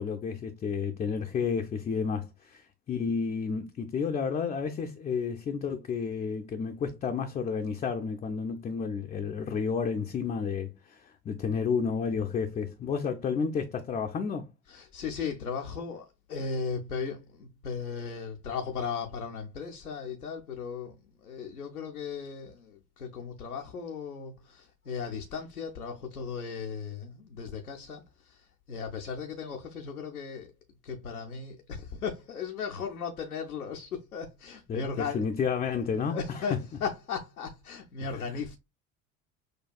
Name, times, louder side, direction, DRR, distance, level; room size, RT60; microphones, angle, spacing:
voice 1, 0.0-14.5 34.7-36.4 38.0-38.3, left 6 dB, 15° left, 0.4 m, -31 dB
voice 2, 14.7-30.5 30.8-35.2 36.0-38.5, left 6 dB, 85° left, 0.6 m, -37 dB
6.3 x 2.3 x 2.3 m
figure-of-eight pair, 60°, 43 cm